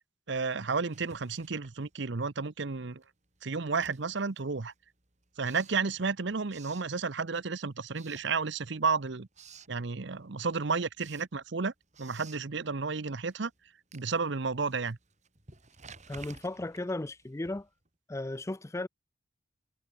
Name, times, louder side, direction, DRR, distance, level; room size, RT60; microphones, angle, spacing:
voice 1, 0.3-3.0 3.4-4.7 5.4-9.3 9.7-11.7 12.0-13.5 13.9-15.0, right 4 dB, 60° right, 0.8 m, -32 dB
Writing, 0.8-2.4 2.7-7.5 7.9-8.9 9.1-9.8 10.2-17.9, right 5 dB, 35° right, 3.9 m, -55 dB
voice 2, 16.1-17.7 18.1-18.9, left 2 dB, 15° left, 0.4 m, -35 dB
head